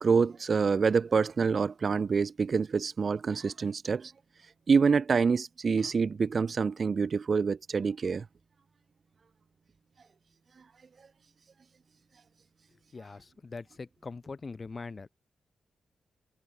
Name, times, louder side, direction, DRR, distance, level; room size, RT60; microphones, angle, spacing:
voice 1, 0.0-4.1 4.7-8.3, right 5 dB, 55° right, 0.4 m, -26 dB
voice 2, 12.9-15.1, left 4 dB, 45° left, 0.5 m, -42 dB
cardioid pair, 55°, 0 cm